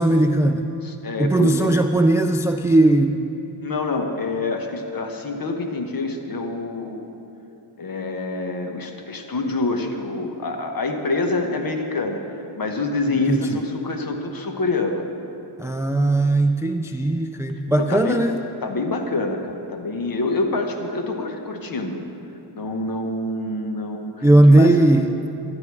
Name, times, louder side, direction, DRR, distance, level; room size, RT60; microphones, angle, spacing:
voice 1, 0.0-0.6 1.2-3.2 13.3-13.5 15.6-18.4 24.2-25.1, right 2 dB, 5° right, 7 dB, 0.4 m, -17 dB
voice 2, 0.8-1.7 3.6-7.1 7.8-15.1 17.8-18.2 18.6-22.0 22.5-24.8, left 2 dB, 45° left, 4 dB, 1.4 m, -26 dB
12.0 x 10.5 x 4.8 m, 2.7 s
cardioid pair, 70°, 50 cm